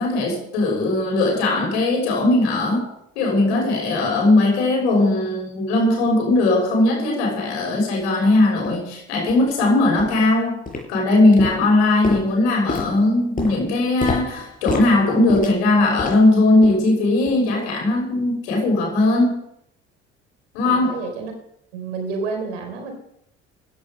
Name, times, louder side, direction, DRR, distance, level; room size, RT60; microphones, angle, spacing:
voice 1, 0.0-2.8 3.1-10.6 10.9-19.4 20.5-21.0, left 2 dB, 65° left, 0 dB, 6.3 m, -19 dB
sound 1, 8.0-8.1 8.6-8.8 9.3-9.5 10.0-10.3 10.7-11.1 11.4-16.3 16.6-16.9 17.3-17.4 18.0-18.1, left 3 dB, 20° left, 6.8 m, -30 dB
voice 2, 20.6-21.3 21.7-22.9, right 4 dB, 70° right, 5 dB, 3.9 m, -29 dB
16.0 x 11.0 x 5.4 m, 0.75 s
figure-of-eight pair, 60°, 36 cm